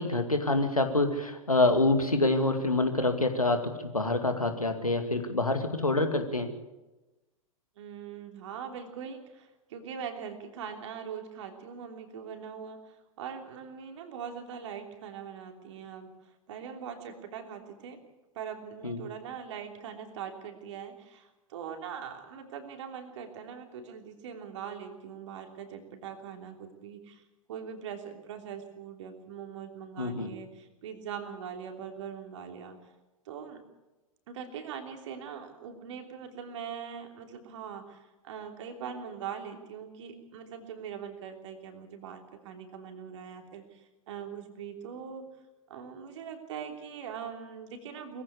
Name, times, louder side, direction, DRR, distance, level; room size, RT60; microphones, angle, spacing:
voice 1, 0.0-6.5 18.8-19.0 30.0-30.3, left 2 dB, 85° left, 6 dB, 2.3 m, -26 dB
voice 2, 7.8-16.1 16.5-18.0 18.3-27.2 27.5-32.8 33.2-33.6 34.3-45.3 45.7-48.2, right 7 dB, 55° right, 5 dB, 3.2 m, -42 dB
22.0 x 15.5 x 8.3 m, 1.1 s
figure-of-eight pair, 95°, 18 cm